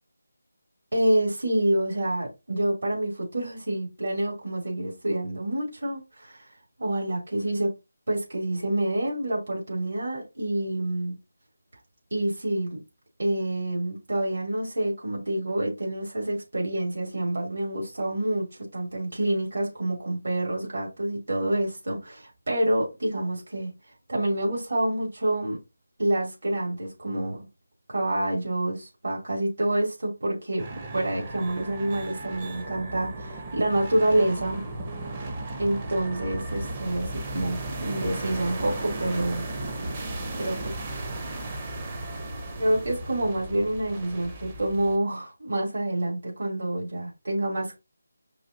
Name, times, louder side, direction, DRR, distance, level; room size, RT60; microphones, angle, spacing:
voice 1, 0.9-6.4 6.8-7.7 8.1-11.1 12.1-12.8 13.2-18.4 18.7-23.7 24.1-25.6 26.0-27.4 27.9-30.6 30.9-34.6 35.6-37.1 37.3-39.5 40.4-40.5 42.6-47.8, right 1 dB, 65° right, 2.8 m, -27 dB
sound 1, 30.6-45.0, right 2 dB, 25° right, 0.7 m, -35 dB
5.4 x 2.7 x 2.6 m
figure-of-eight pair, 165°, 0 cm